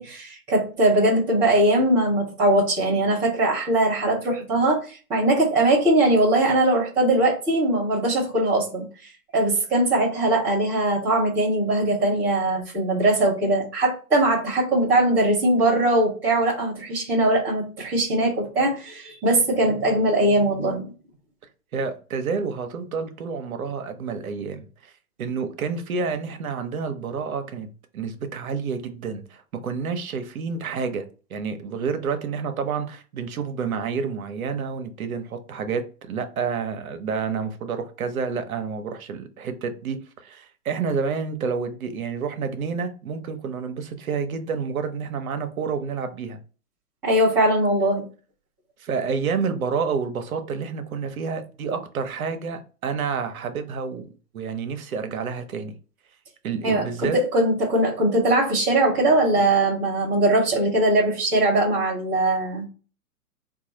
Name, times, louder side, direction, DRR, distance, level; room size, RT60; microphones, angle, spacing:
voice 1, 0.0-20.9 47.0-48.0 56.6-62.7, right 1 dB, 5° right, 0.4 m, -21 dB
voice 2, 21.7-24.9 25.2-27.7 27.9-46.4 48.8-55.7 56.4-57.2, right 5 dB, 65° right, 0.8 m, -29 dB
3.9 x 2.3 x 2.8 m
figure-of-eight pair, 120°, 46 cm